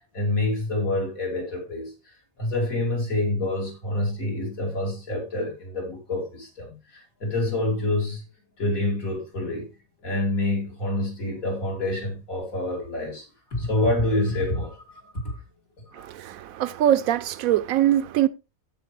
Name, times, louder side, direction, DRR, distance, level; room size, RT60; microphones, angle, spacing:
voice 1, 0.1-1.9 2.4-8.2 8.6-9.7 10.0-15.4 15.8-16.0, left 2 dB, 85° left, 3.4 m, -27 dB
voice 2, 15.9-18.3, right 11 dB, 85° right, 1.1 m, -22 dB
14.5 x 5.0 x 3.3 m
omnidirectional pair, 1.4 m